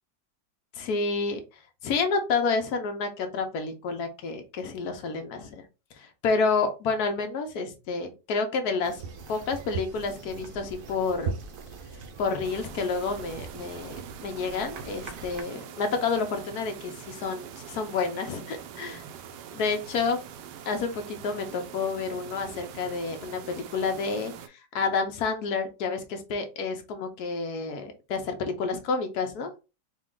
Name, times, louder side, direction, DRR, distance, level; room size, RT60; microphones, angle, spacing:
voice 1, 0.7-1.4 1.8-5.6 6.0-9.0 9.3-11.3 12.2-19.0 19.5-20.2 20.7-24.3 24.7-29.5, left 4 dB, 65° left, 5 dB, 1.2 m, -29 dB
sound 1, 8.8-15.4, right 5 dB, 60° right, 0.9 m, -40 dB
sound 2, 12.4-24.5, right 8 dB, 80° right, 1.2 m, -44 dB
4.2 x 2.3 x 3.6 m, 0.30 s
omnidirectional pair, 1.9 m